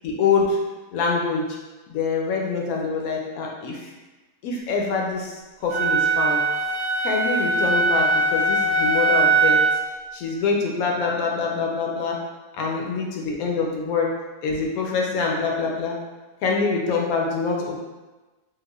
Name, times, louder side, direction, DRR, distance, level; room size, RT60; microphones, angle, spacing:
voice 1, 0.0-0.6 0.9-1.6 1.9-3.9 4.4-6.4 7.0-9.6 10.1-12.2 12.5-14.1 14.4-16.0 16.4-17.8, left 4 dB, 70° left, -1 dB, 1.0 m, -25 dB
Wind instrument woodwind instrument, 5.7-9.9, right 3 dB, 85° right, 1.3 m, -21 dB
4.6 x 2.1 x 2.3 m, 1.2 s
omnidirectional pair, 1.7 m